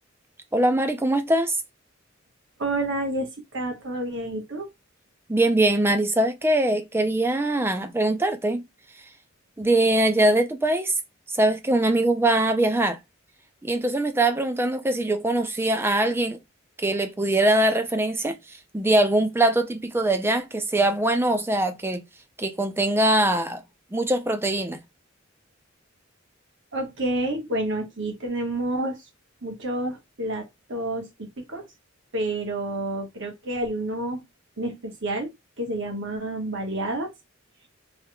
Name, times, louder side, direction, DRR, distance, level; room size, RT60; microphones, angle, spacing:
voice 1, 0.5-1.6 5.3-8.7 9.6-10.9 11.3-13.0 13.6-16.4 16.8-22.0 22.4-23.6 23.9-24.8, right 1 dB, 10° right, 0.4 m, -22 dB
voice 2, 2.6-4.7 26.7-29.0 29.4-31.7 32.1-34.2 34.6-37.1, right 1 dB, 60° right, 1.2 m, -29 dB
3.4 x 3.1 x 2.2 m
head